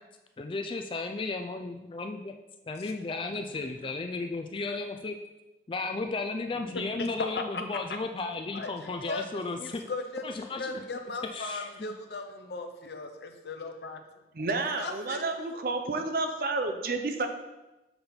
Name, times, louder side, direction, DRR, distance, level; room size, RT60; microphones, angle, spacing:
voice 1, 0.4-2.3 2.7-5.2 5.7-9.8 10.2-11.0 11.3-11.9, left 3 dB, 30° left, 5 dB, 0.3 m, -34 dB
voice 2, 3.3-3.8 6.7-7.8 8.5-14.0 14.8-15.6, left 3 dB, 65° left, 5 dB, 0.7 m, -38 dB
voice 3, 14.3-17.3, right 3 dB, 50° right, 6 dB, 0.6 m, -30 dB
6.8 x 4.3 x 4.0 m, 1.0 s
head